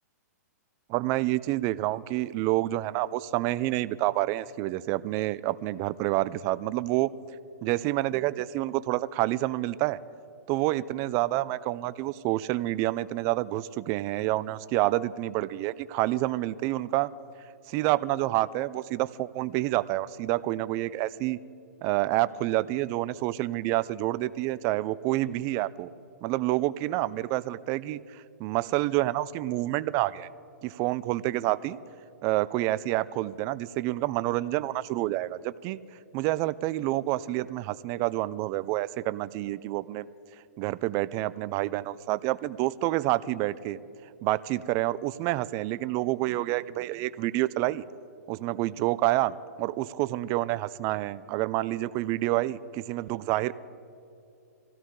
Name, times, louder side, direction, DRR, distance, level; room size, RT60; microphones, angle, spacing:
voice 1, 0.9-7.1 7.6-10.0 10.5-17.1 17.7-21.4 21.8-25.9 26.2-30.3 30.6-31.8 32.2-35.8 36.1-40.1 40.6-43.8 44.2-47.8 48.3-53.5, right 17 dB, 35° right, 17 dB, 0.4 m, -28 dB
24.0 x 16.0 x 3.8 m, 2.7 s
hypercardioid pair, 130°, 9 cm